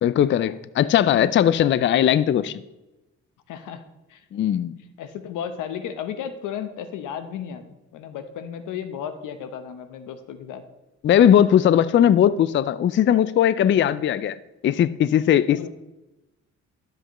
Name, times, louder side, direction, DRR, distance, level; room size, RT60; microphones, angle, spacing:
voice 1, 0.0-2.6 4.3-4.7 11.0-14.4 14.6-15.7, left 10 dB, 40° left, 16 dB, 0.4 m, -19 dB
voice 2, 3.5-3.8 4.1-4.6 5.0-7.6 7.9-10.6 13.7-13.9 15.5-15.7, left 8 dB, 90° left, 10 dB, 0.9 m, -34 dB
12.0 x 7.9 x 3.0 m, 0.99 s
cardioid pair, 90°, 30 cm